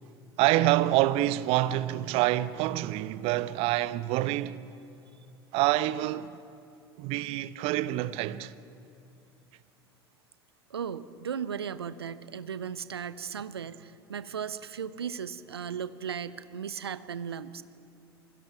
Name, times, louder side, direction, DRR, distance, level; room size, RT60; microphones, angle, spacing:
voice 1, 0.4-4.7 5.5-6.4 7.0-8.5, right 15 dB, 50° right, 0.8 m, -27 dB
voice 2, 10.7-17.6, right 7 dB, 80° right, 0.8 m, -36 dB
27.5 x 22.0 x 5.9 m
figure-of-eight pair, 75°, 13 cm